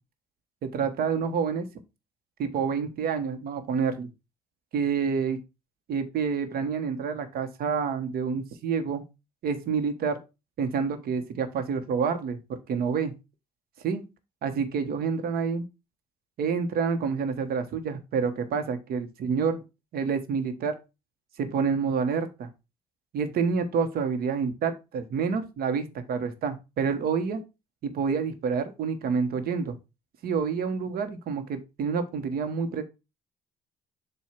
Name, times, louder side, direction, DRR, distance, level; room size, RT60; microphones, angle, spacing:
voice 1, 0.6-1.7 2.4-4.1 4.7-5.4 5.9-9.0 9.4-10.2 10.6-13.1 13.8-14.0 14.4-15.6 16.4-19.6 19.9-20.7 21.4-22.5 23.1-27.4 27.8-29.8 30.2-32.8, right 6 dB, 65° right, 1.3 m, -28 dB
7.7 x 2.7 x 5.8 m
cardioid pair, 110°, 17 cm